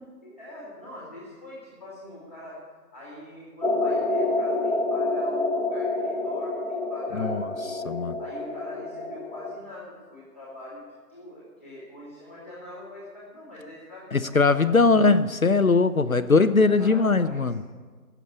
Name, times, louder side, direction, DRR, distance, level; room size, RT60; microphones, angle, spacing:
voice 1, 0.2-2.6 2.9-7.9 8.2-10.8 11.1-14.9 16.1-17.5, left 1 dB, 10° left, -6 dB, 1.8 m, -43 dB
sound 1, 3.6-9.6, left 2 dB, 40° left, 1.0 m, -28 dB
voice 2, 7.7-8.2 14.1-17.6, left 4 dB, 60° left, 11 dB, 0.7 m, -20 dB
17.0 x 7.1 x 8.2 m, 1.5 s
figure-of-eight pair, 170°, 49 cm